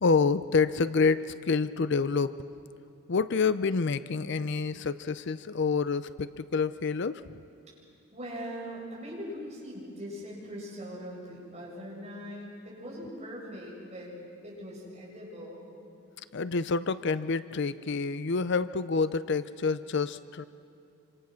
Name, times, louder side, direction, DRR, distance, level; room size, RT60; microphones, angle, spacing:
voice 1, 0.0-2.4 3.1-7.4 16.3-20.4, left 4 dB, 55° left, 14 dB, 0.5 m, -28 dB
voice 2, 8.1-14.1 14.4-15.7, equal, 30° right, -4 dB, 7.7 m, -41 dB
26.5 x 26.5 x 6.4 m, 2.6 s
head